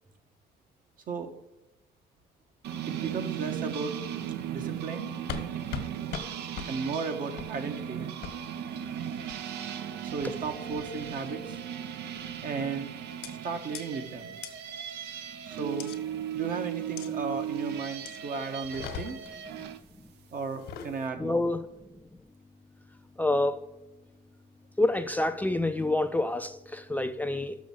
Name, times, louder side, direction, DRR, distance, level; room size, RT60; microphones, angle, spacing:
sound 1, 2.6-19.8, right 9 dB, 75° right, 0.7 m, -37 dB
voice 1, 2.9-3.9 4.5-5.1 6.6-8.1 10.1-11.6 12.4-12.9 13.4-14.3 15.4-15.9 16.3-19.2 20.3-21.5, right 4 dB, 55° right, 1.2 m, -35 dB
sound 2, 5.3-5.5 5.7-5.9 6.1-6.3 6.6-6.7 7.4-7.5 8.2-8.3 9.3-9.6 10.2-10.6 11.0-11.3 12.1-12.4 13.2-13.3 13.7-13.8 14.4-14.5 15.8-16.0 17.0-17.1 18.1-18.2 18.6-19.3 20.5-20.9, left 7 dB, 75° left, 1.2 m, -39 dB
voice 2, 21.2-21.6 23.2-23.6 24.8-27.6, left 2 dB, 10° left, 0.4 m, -27 dB
6.2 x 6.2 x 7.2 m
cardioid pair, 110°, 17 cm